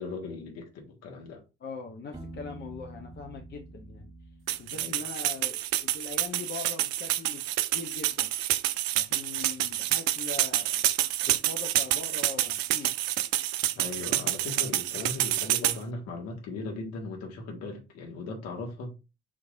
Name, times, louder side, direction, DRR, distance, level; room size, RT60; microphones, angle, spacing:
voice 1, 0.0-1.4 4.7-5.0 13.8-18.9, left 3 dB, 60° left, 1.7 m, -38 dB
voice 2, 1.6-4.1 4.6-7.4 7.7-8.3 9.0-10.8 11.3-12.9, left 4 dB, 35° left, 0.8 m, -41 dB
Piano, 2.1-5.8, right 2 dB, 15° right, 1.6 m, -47 dB
sound 1, 4.5-15.8, right 13 dB, 60° right, 0.5 m, -28 dB
5.9 x 3.1 x 2.6 m
figure-of-eight pair, 45°, 30 cm